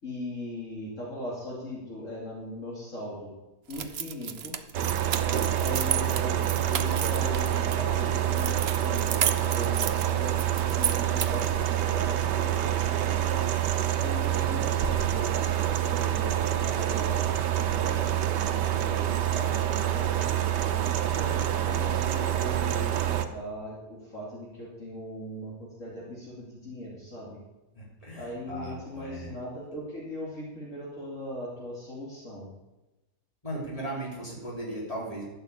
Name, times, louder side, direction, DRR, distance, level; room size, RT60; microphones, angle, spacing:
voice 1, 0.0-3.3 3.7-4.6 5.3-10.4 10.7-13.4 14.0-20.2 20.7-27.4 28.1-32.5, left 1 dB, 50° left, -5 dB, 3.1 m, -39 dB
sound 1, 3.7-7.8 8.3-11.5, right 8 dB, 55° right, 0.8 m, -32 dB
sound 2, 4.7-23.3, right 11 dB, 90° right, 1.5 m, -27 dB
voice 2, 27.7-29.3 33.4-35.2, right 1 dB, 20° left, -4 dB, 4.0 m, -37 dB
12.5 x 7.1 x 8.4 m, 1.0 s
omnidirectional pair, 1.8 m